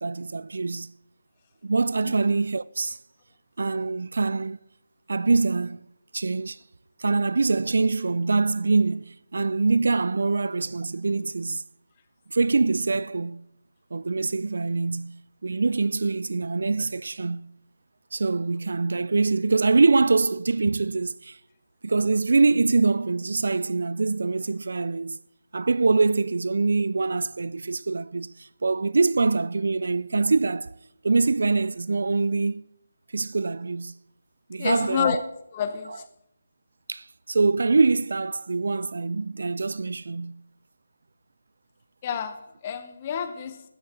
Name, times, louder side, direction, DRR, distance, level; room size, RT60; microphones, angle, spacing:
voice 1, 0.0-0.9 1.6-3.0 3.6-4.6 5.1-5.8 6.1-6.6 7.0-11.6 12.3-13.4 13.9-17.5 18.1-21.4 21.8-25.2 25.5-30.7 31.0-32.7 33.1-33.9 34.5-35.2 36.9-40.4, right 3 dB, 60° right, 0.4 m, -24 dB
voice 2, 34.6-35.2 35.5-36.1 42.0-43.6, left 8 dB, 25° left, 0.9 m, -29 dB
13.5 x 7.9 x 7.6 m
figure-of-eight pair, 160°, 0 cm